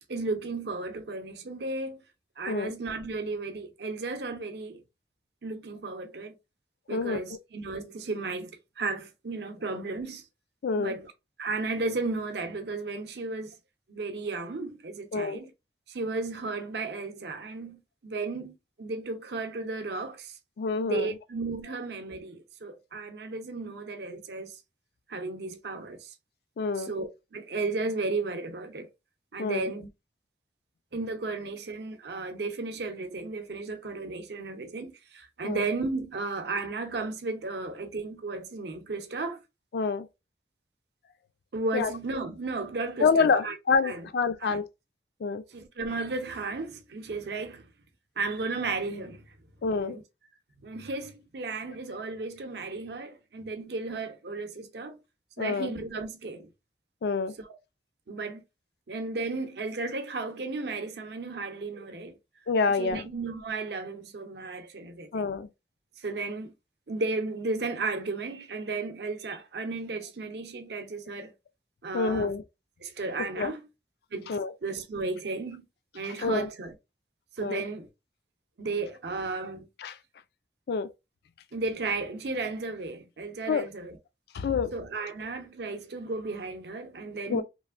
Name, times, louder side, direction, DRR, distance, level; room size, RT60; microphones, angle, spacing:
voice 1, 0.1-2.0 2.4-4.8 5.4-6.3 6.9-10.3 10.8-11.1 11.4-13.5 13.9-15.5 15.9-20.4 20.8-24.6 25.1-26.1 26.8-28.9 29.3-29.9 30.9-39.4 41.5-43.6 43.8-44.1 44.4-44.6 45.5-47.7 48.2-49.4 49.8-50.0 50.6-55.0 55.4-56.5 57.4-57.5 58.1-58.4 58.9-62.2 62.7-65.3 66.0-66.5 66.9-71.3 71.8-72.3 72.8-73.6 74.1-74.3 74.6-75.7 75.9-76.7 77.4-77.9 78.6-79.7 81.5-84.0 84.7-87.4, right 3 dB, 65° right, 0.6 m, -34 dB
voice 2, 6.9-7.4 10.6-10.9 15.1-15.4 20.6-21.1 26.6-26.9 29.4-29.7 35.4-35.6 39.7-40.1 41.7-41.9 43.0-44.6 45.2-45.4 49.6-50.0 55.4-55.7 57.0-57.3 62.5-63.0 65.1-65.5 71.9-72.4 73.4-73.5 74.3-74.5 76.2-76.5 77.4-77.6 79.8-79.9 80.7-80.9 83.5-83.7 84.3-84.7 87.3-87.4, left 5 dB, 60° left, 0.3 m, -27 dB
3.0 x 2.5 x 2.4 m
head